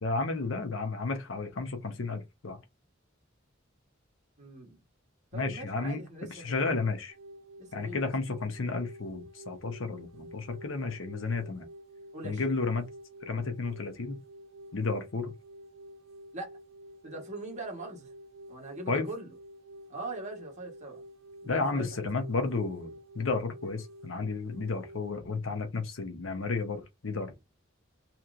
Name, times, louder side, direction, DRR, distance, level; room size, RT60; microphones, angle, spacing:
voice 1, 0.0-2.6 5.3-6.0 6.4-7.1 7.7-11.7 12.2-12.9 13.2-14.2 14.7-15.3 18.9-19.1 21.4-27.4, left 3 dB, 70° left, 0.8 m, -32 dB
voice 2, 4.4-4.8 5.3-6.6 7.6-8.4 12.1-12.6 16.3-16.6 17.0-18.1 18.5-19.3 19.9-21.0 21.4-22.1, right 2 dB, 35° right, 1.3 m, -42 dB
sound 1, 7.1-25.1, right 1 dB, 75° right, 0.6 m, -50 dB
3.0 x 2.9 x 2.5 m
head